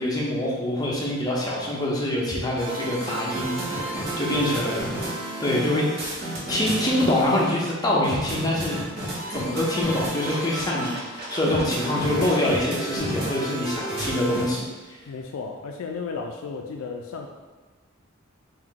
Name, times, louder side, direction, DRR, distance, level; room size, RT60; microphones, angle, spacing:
voice 1, 0.0-4.9 5.4-5.9 6.2-8.8 9.3-15.0, left 1 dB, 20° left, -4 dB, 0.7 m, -25 dB
sound 1, 2.6-7.4 8.0-14.5, right 1 dB, 50° right, 1.0 m, -31 dB
voice 2, 15.1-17.3, left 4 dB, 80° left, 2 dB, 0.3 m, -34 dB
3.5 x 2.6 x 3.7 m, 1.3 s
head